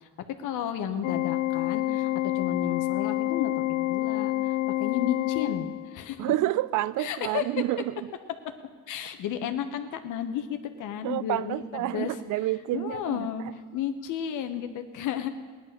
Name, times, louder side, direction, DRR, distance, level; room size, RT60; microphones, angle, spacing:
voice 1, 0.0-2.1 2.3-6.3 7.0-7.4 8.4-8.5 8.9-12.1 12.7-15.3, left 9 dB, 90° left, 1.2 m, -33 dB
Organ, 1.0-6.1, left 16 dB, 70° left, 0.6 m, -28 dB
voice 2, 6.2-8.0 11.0-13.5, right 15 dB, 80° right, 0.5 m, -29 dB
17.0 x 11.0 x 6.6 m
cardioid pair, 90°, 30 cm